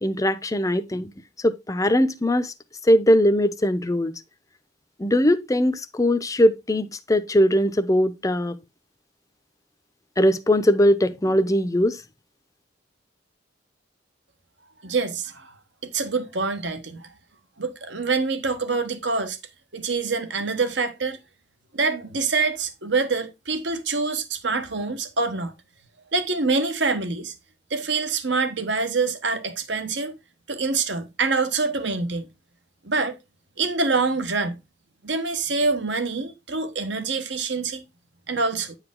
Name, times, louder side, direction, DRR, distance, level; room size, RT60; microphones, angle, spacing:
voice 1, 0.0-1.1 1.4-2.5 2.8-4.1 5.0-8.6 10.2-12.0, equal, 20° left, 0.6 m, -20 dB
voice 2, 14.8-15.5 15.8-17.1 17.6-19.4 19.7-21.2 21.7-25.5 26.1-27.3 27.7-30.2 30.5-32.3 32.8-33.1 33.6-34.6 35.0-37.8 38.3-38.8, right 4 dB, 70° right, 1.2 m, -25 dB
9.5 x 4.9 x 3.6 m
head